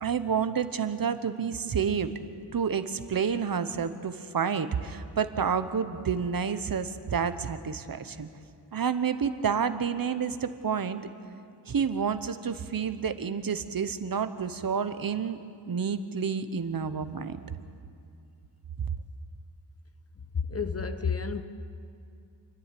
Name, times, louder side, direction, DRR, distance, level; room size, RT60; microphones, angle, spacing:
voice 1, 0.0-2.1 2.5-8.3 8.7-11.0 11.7-15.4 15.7-17.4, right 6 dB, 55° right, 11 dB, 0.9 m, -29 dB
voice 2, 20.3-21.4, left 5 dB, 35° left, 8 dB, 1.0 m, -30 dB
27.0 x 10.5 x 9.9 m, 2.5 s
wide cardioid pair, 150°, 42 cm